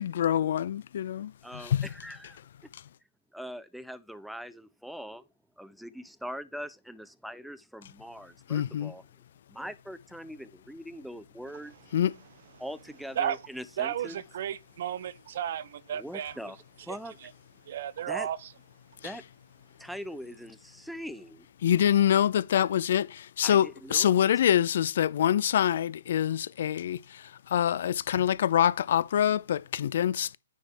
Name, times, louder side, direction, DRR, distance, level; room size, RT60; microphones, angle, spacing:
voice 1, 0.0-1.3 8.5-8.9 11.9-12.1 19.0-19.1 21.6-30.4, left 10 dB, 60° left, 0.4 m, -25 dB
voice 2, 3.3-5.3 5.6-9.0 9.5-11.7 12.6-14.2 15.9-17.2 18.1-18.3 19.0-19.2 19.8-21.5 23.4-24.1, equal, ahead, 0.5 m, -42 dB
voice 3, 13.8-16.3 17.2-17.3 17.7-18.4, right 10 dB, 55° right, 0.5 m, -33 dB
9.5 x 3.5 x 4.1 m
hypercardioid pair, 140°, 0 cm